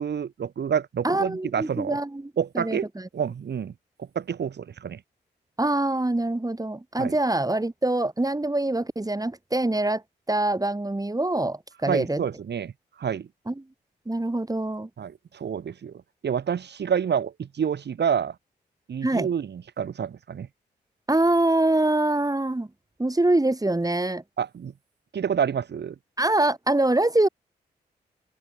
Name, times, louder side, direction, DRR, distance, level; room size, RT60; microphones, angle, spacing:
voice 1, 0.0-2.0 2.4-2.9 3.1-3.7 4.0-5.0 7.0-7.2 11.9-12.7 13.0-13.3 15.0-15.9 16.2-18.3 18.9-20.5 24.4-24.7 25.1-25.9, right 7 dB, 70° right, 5.9 m, -28 dB
voice 2, 1.0-3.1 5.6-10.0 10.3-12.2 13.5-13.6 14.1-14.9 19.0-19.3 21.1-22.7 23.0-24.2 26.2-27.3, right 2 dB, 20° right, 5.9 m, -24 dB
open air
supercardioid pair, 45°, 18 cm